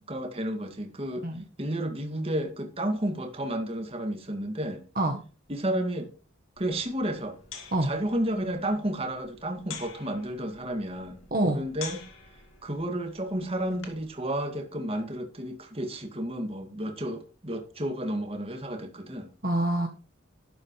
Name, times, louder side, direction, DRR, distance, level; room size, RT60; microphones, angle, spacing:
voice 1, 0.1-1.3 1.6-4.8 5.5-6.1 6.6-7.4 7.8-11.2 11.5-12.0 12.6-19.3, right 1 dB, 30° right, 2.2 m, -31 dB
sound 1, 6.6-14.1, left 6 dB, 70° left, 2.6 m, -47 dB
voice 2, 11.3-11.6 19.4-19.9, right 1 dB, 45° right, 1.4 m, -25 dB
12.0 x 11.0 x 3.2 m
head